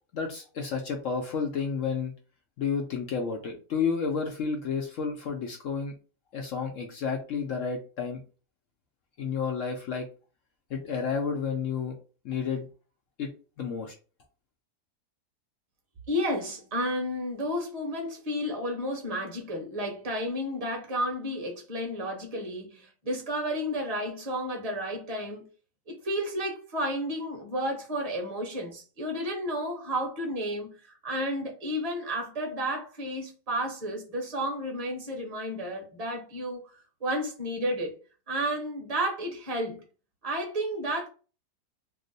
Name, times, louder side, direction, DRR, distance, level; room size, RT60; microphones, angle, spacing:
voice 1, 0.1-2.1 2.6-5.9 6.3-8.2 9.2-10.1 10.7-11.9 12.2-12.7 13.2-13.3 13.6-13.9, left 5 dB, 65° left, 0.9 m, -31 dB
voice 2, 16.1-25.4 25.9-36.7 37.0-37.9 38.3-39.8 40.2-41.1, equal, 30° right, 0.9 m, -32 dB
2.9 x 2.0 x 3.9 m
omnidirectional pair, 1.7 m